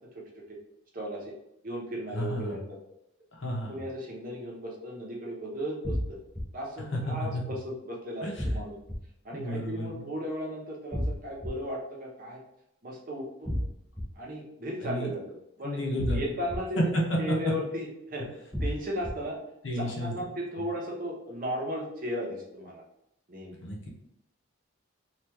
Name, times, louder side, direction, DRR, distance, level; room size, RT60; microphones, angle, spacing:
voice 1, 0.9-1.3 1.6-2.8 3.7-6.2 6.5-8.7 9.2-12.4 12.8-13.5 14.2-15.8 16.1-16.8 17.2-18.2 18.6-19.4 19.7-22.8 23.3-23.6, equal, 40° right, -2 dB, 0.8 m, -36 dB
voice 2, 2.1-2.7 3.4-3.8 6.9-7.4 8.2-8.5 9.3-10.0 14.8-15.1 15.6-16.3 16.9-17.5 19.6-20.1 23.6-23.9, equal, 70° left, -1 dB, 0.9 m, -31 dB
sound 1, 5.8-6.4 8.4-9.0 10.9-11.5 13.5-14.0 16.0-16.6 18.5-19.1, equal, ahead, 0.5 m, -30 dB
2.9 x 2.4 x 3.4 m, 0.81 s
head